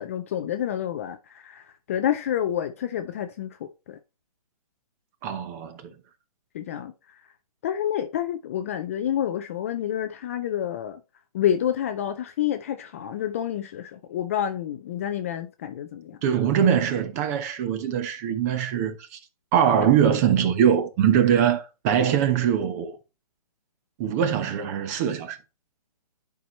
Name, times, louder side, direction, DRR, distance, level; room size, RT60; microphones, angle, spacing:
voice 1, 0.0-4.0 6.5-7.2 7.6-11.0 11.3-16.2, left 10 dB, 20° left, 0.4 m, -29 dB
voice 2, 5.2-5.9 16.2-19.2 19.5-23.0 24.0-25.4, right 9 dB, 25° right, 0.9 m, -22 dB
10.5 x 4.6 x 3.1 m
hypercardioid pair, 150°, 20 cm